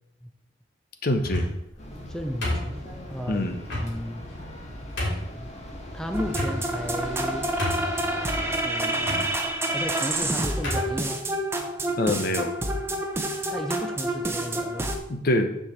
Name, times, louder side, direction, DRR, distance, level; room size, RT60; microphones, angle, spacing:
voice 1, 1.0-1.5 3.3-3.6 12.0-12.5 15.1-15.5, left 1 dB, 55° left, 7 dB, 1.0 m, -24 dB
sound 1, 1.2-1.7 2.4-3.1 3.7-3.9 4.5-4.6 5.0-5.3 6.3-6.9 7.2-7.3 7.6-8.1 9.0-9.2 10.1-10.2 10.6-10.9, left 1 dB, 70° left, 3.2 m, -29 dB
sound 2, 1.8-8.6, left 1 dB, 35° left, 1.7 m, -40 dB
voice 2, 2.1-3.5 3.7-4.2 5.4-5.5 5.9-7.5 8.6-11.2 13.5-15.0, equal, 5° left, 5 dB, 0.5 m, -34 dB
sound 3, 6.1-15.0, right 1 dB, 15° right, 0.9 m, -28 dB
7.1 x 4.9 x 7.1 m, 0.83 s
head